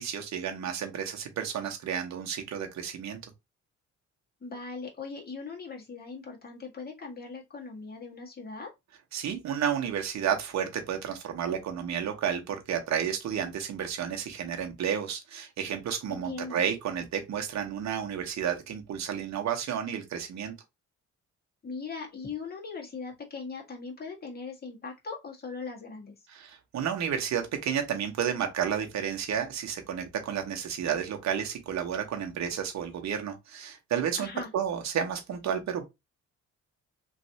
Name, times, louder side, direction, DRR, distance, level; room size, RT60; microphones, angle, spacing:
voice 1, 0.0-3.2 9.1-20.5 26.3-34.3 34.5-35.9, right 8 dB, 65° right, 1.0 m, -31 dB
voice 2, 4.4-8.7 16.1-16.6 21.6-26.1 34.2-34.5, left 4 dB, 30° left, 1.5 m, -40 dB
3.2 x 2.6 x 2.7 m
cardioid pair, 90°, 30 cm